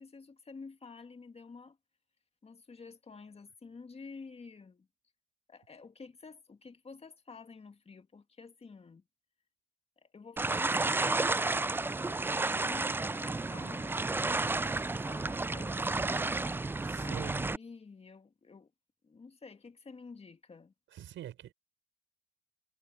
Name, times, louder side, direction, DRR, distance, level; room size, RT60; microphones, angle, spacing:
voice 1, 0.0-1.8 2.4-4.9 5.5-9.0 10.0-14.0 15.0-16.4 17.0-18.7 19.0-20.7, left 4 dB, 30° left, 1.9 m, -50 dB
sound 1, 10.4-17.6, right 3 dB, 10° right, 0.3 m, -32 dB
voice 2, 16.8-17.6 20.9-21.5, right 11 dB, 75° right, 5.7 m, -45 dB
cardioid pair, 90°, 20 cm